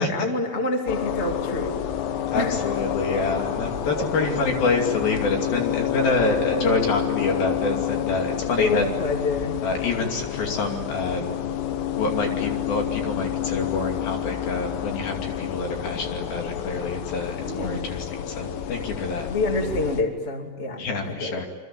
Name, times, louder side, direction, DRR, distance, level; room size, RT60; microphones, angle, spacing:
voice 1, 0.0-1.8 2.3-2.6 4.0-4.1 6.4-6.9 8.6-9.6 17.5-17.9 19.3-21.5, left 2 dB, 20° left, 3 dB, 1.9 m, -27 dB
sound 1, 0.9-20.0, left 10 dB, 80° left, 4.0 m, -29 dB
voice 2, 2.3-8.8 9.6-11.3 12.0-19.3 20.8-21.5, left 3 dB, 55° left, 3 dB, 3.9 m, -27 dB
27.5 x 23.0 x 8.9 m, 1.2 s
omnidirectional pair, 5.7 m